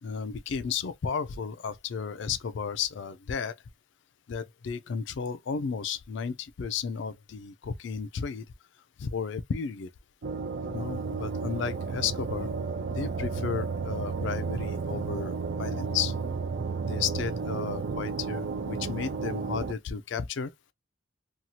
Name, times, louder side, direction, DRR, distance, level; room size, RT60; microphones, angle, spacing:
voice 1, 0.0-3.6 4.3-8.4 9.0-9.9 10.7-12.5 12.9-15.3 15.6-16.1 16.8-20.5, left 6 dB, 65° left, 0.4 m, -33 dB
sound 1, 10.2-19.7, right 5 dB, 60° right, 0.4 m, -32 dB
2.8 x 2.3 x 2.7 m
head